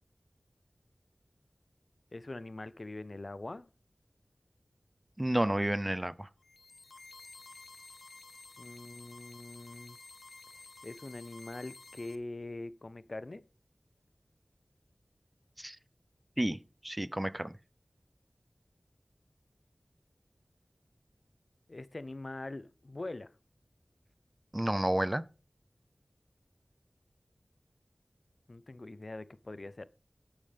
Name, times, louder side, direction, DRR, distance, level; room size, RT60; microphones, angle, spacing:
voice 1, 2.1-3.7 8.6-10.0 10.8-13.5 21.7-23.3 28.5-29.9, left 2 dB, 60° left, 0.6 m, -43 dB
voice 2, 5.2-6.3 15.6-15.8 16.4-17.6 24.5-25.2, right 1 dB, 25° right, 0.6 m, -31 dB
sound 1, 6.4-12.2, left 3 dB, 85° left, 0.8 m, -52 dB
12.0 x 9.0 x 3.4 m
wide cardioid pair, 40°, 0 cm